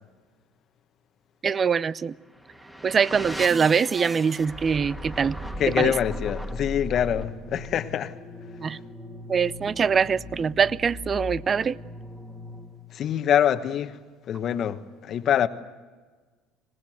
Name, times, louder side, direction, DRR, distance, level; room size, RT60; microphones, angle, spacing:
voice 1, 1.4-2.1 2.8-5.4 5.8-5.9 8.6-8.8 9.3-11.8, right 6 dB, 35° right, 0.7 m, -23 dB
sound 1, 2.2-12.9, left 1 dB, 10° right, 2.4 m, -38 dB
voice 2, 5.6-8.1 12.9-14.0 14.3-15.5, left 9 dB, 50° left, 1.2 m, -25 dB
25.5 x 19.5 x 7.9 m
supercardioid pair, 85°, 0 cm